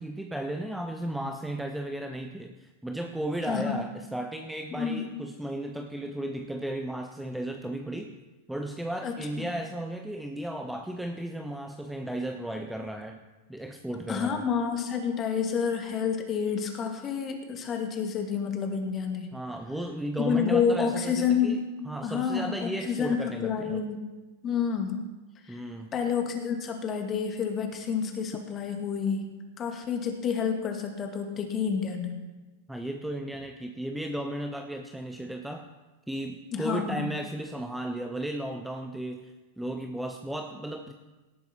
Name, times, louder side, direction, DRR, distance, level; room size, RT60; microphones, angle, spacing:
voice 1, 0.0-8.2 8.5-14.5 19.3-23.8 25.5-25.9 32.7-35.7 36.1-40.9, right 1 dB, 5° right, 5 dB, 0.8 m, -35 dB
voice 2, 3.5-3.8 4.8-5.0 9.0-9.5 14.1-19.3 20.2-21.6 22.0-24.0 24.4-25.0 25.5-25.6 25.9-29.3 29.6-32.2 36.5-37.1, left 6 dB, 25° left, 4 dB, 2.2 m, -29 dB
18.0 x 7.9 x 4.4 m, 1.2 s
figure-of-eight pair, 90°, 0 cm